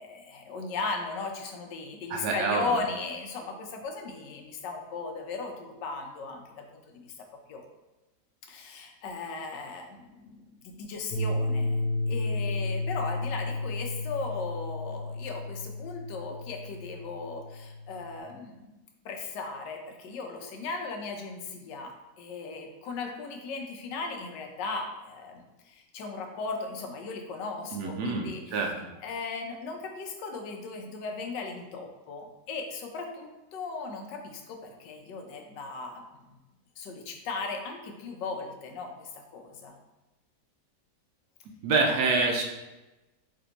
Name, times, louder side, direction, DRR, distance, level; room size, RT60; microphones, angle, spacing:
voice 1, 0.0-7.1 7.5-7.6 8.5-18.8 19.0-28.6 29.0-36.4 36.8-39.8, left 4 dB, 85° left, 3 dB, 1.3 m, -37 dB
voice 2, 2.1-2.7 27.7-28.7 41.6-42.4, right 3 dB, 70° right, 2 dB, 1.2 m, -26 dB
sound 1, 11.1-18.2, left 2 dB, 70° left, 1.0 m, -32 dB
3.6 x 3.3 x 3.9 m, 1.1 s
omnidirectional pair, 1.9 m